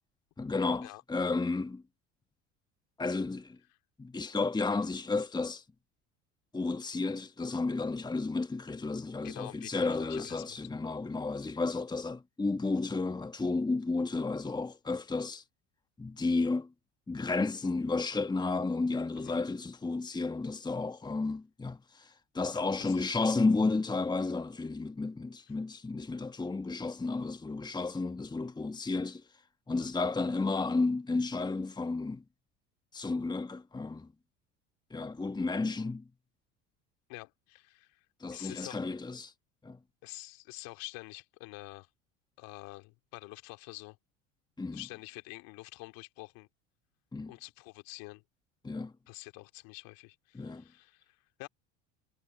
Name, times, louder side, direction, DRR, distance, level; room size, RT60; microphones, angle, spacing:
voice 1, 0.4-1.8 3.0-3.6 4.0-5.6 6.5-15.4 16.0-16.7 17.1-29.2 29.7-32.2 32.9-34.1 34.9-36.1 38.2-39.3 39.6-39.8 44.6-44.8 47.1-47.3 48.6-48.9 50.3-50.6, left 3 dB, 10° left, 1.3 m, -32 dB
voice 2, 9.2-10.6 19.2-19.4 22.8-23.2 37.1-38.0 38.3-38.8 40.0-41.9 42.4-44.0 44.7-46.5 47.3-48.2 49.1-51.5, left 24 dB, 65° left, 2.6 m, -47 dB
hypercardioid pair, 80°, 37 cm